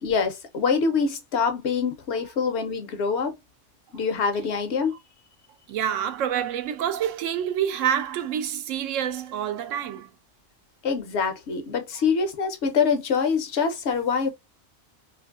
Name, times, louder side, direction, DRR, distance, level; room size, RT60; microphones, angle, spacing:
voice 1, 0.0-3.3 3.9-4.9 10.8-14.3, left 5 dB, 70° left, 0.8 m, -25 dB
voice 2, 5.7-10.1, right 9 dB, 80° right, 0.9 m, -27 dB
2.7 x 2.5 x 2.3 m
omnidirectional pair, 1.3 m